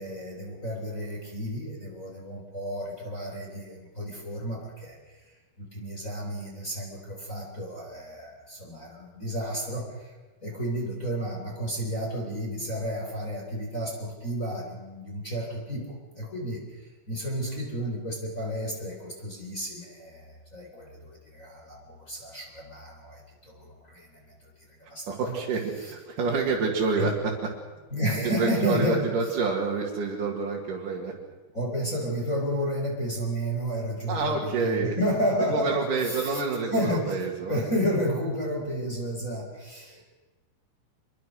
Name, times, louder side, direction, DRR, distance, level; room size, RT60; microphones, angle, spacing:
voice 1, 0.0-5.0 5.6-10.1 10.4-16.6 17.1-24.4 24.8-25.4 27.0-27.1 27.9-29.0 31.5-36.4 36.7-37.2 37.5-40.0, equal, 20° left, -1 dB, 3.6 m, -31 dB
voice 2, 25.1-27.5 28.2-31.1 34.1-35.0 35.4-37.6, right 4 dB, 55° right, -3 dB, 3.4 m, -28 dB
25.5 x 22.0 x 6.4 m, 1.3 s
omnidirectional pair, 4.9 m